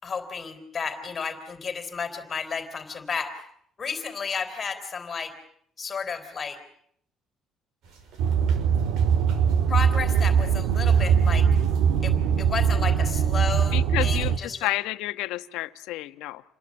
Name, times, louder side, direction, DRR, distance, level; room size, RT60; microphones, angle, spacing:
voice 1, 0.0-3.4 3.8-5.3 5.8-6.6 9.7-11.5 12.0-14.7, left 5 dB, 30° left, 9 dB, 4.0 m, -32 dB
sound 1, 7.8-14.1, right 5 dB, 70° right, 5.6 m, -47 dB
sound 2, 8.2-14.4, right 7 dB, 90° right, 1.6 m, -21 dB
voice 2, 13.7-16.4, left 17 dB, 85° left, 11 dB, 1.2 m, -30 dB
28.5 x 22.0 x 8.8 m, 0.69 s
cardioid pair, 140°, 0 cm